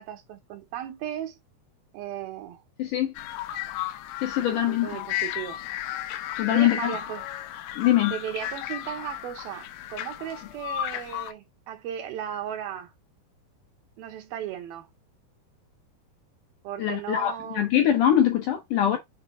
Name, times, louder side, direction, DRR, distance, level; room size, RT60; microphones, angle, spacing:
voice 1, 0.0-1.4 1.9-2.6 4.4-5.6 6.5-7.3 8.1-12.9 14.0-14.9 16.6-17.7, right 10 dB, 75° right, 2.5 m, -36 dB
voice 2, 2.8-3.1 4.2-4.9 6.4-6.9 7.8-8.2 16.8-19.0, left 11 dB, 70° left, 2.0 m, -23 dB
sound 1, 3.2-11.3, left 12 dB, 90° left, 2.8 m, -34 dB
7.7 x 3.5 x 3.7 m
omnidirectional pair, 4.7 m